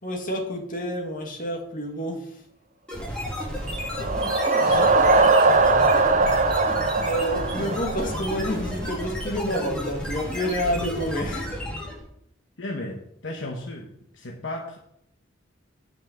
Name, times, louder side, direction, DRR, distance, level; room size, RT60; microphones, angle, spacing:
voice 1, 0.0-2.4 4.6-4.8 7.0-11.5, equal, 45° left, 2 dB, 2.0 m, -29 dB
sound 1, 2.9-12.1, equal, 5° left, 2.7 m, -32 dB
sound 2, 3.6-8.5, right 3 dB, 40° right, 0.8 m, -20 dB
voice 2, 4.6-6.5 7.3-7.7 12.6-14.8, left 1 dB, 65° left, 1 dB, 1.1 m, -36 dB
8.4 x 5.6 x 7.4 m, 0.76 s
head